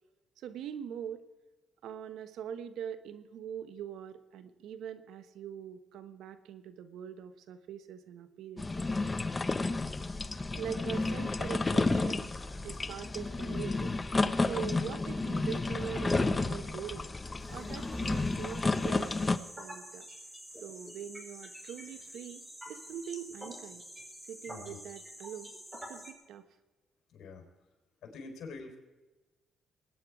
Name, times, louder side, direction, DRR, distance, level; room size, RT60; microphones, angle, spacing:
voice 1, 0.4-1.3 1.8-8.9 10.6-12.3 12.6-13.9 14.5-17.0 17.5-20.1 20.6-22.4 22.7-23.8 24.2-26.4, right 8 dB, 80° right, 11 dB, 1.2 m, -43 dB
sound 1, 8.6-19.4, left 3 dB, 25° left, 0.8 m, -31 dB
sound 2, 17.4-26.1, equal, 10° right, 4.1 m, -48 dB
voice 2, 24.5-24.8 27.1-27.4 28.0-28.8, left 4 dB, 65° left, 3 dB, 4.4 m, -46 dB
21.5 x 9.9 x 4.9 m, 1.2 s
cardioid pair, 90°, 0 cm